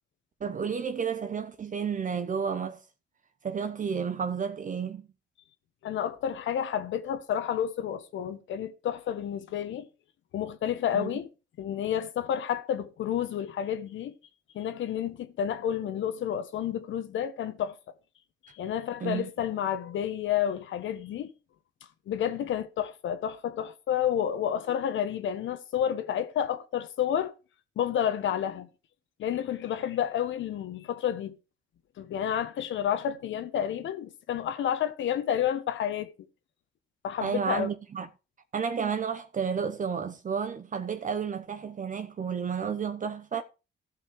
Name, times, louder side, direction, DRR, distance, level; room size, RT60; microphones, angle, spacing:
voice 1, 0.4-2.8 3.4-5.1 10.9-11.1 19.0-19.3 37.2-38.1 38.5-43.4, right 6 dB, 40° right, 0.9 m, -31 dB
voice 2, 5.8-9.9 10.3-11.3 11.6-14.1 14.5-17.8 18.5-21.3 22.1-27.3 27.8-28.7 29.2-31.3 32.0-36.1 37.0-37.7, left 9 dB, 75° left, 1.4 m, -30 dB
14.5 x 5.6 x 4.6 m
cardioid pair, 90°, 20 cm